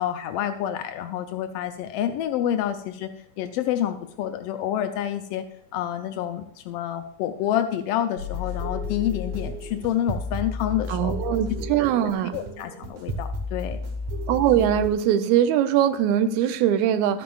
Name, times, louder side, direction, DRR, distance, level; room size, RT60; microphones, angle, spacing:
voice 1, 0.0-3.1 3.4-5.4 5.7-11.3 12.3-13.8, left 11 dB, 90° left, 8 dB, 1.3 m, -28 dB
sound 1, 8.2-14.9, left 2 dB, 70° right, 2.2 m, -32 dB
voice 2, 10.9-12.3 14.3-17.2, right 10 dB, 85° right, 10 dB, 1.9 m, -21 dB
12.5 x 9.2 x 2.4 m, 0.67 s
omnidirectional pair, 3.3 m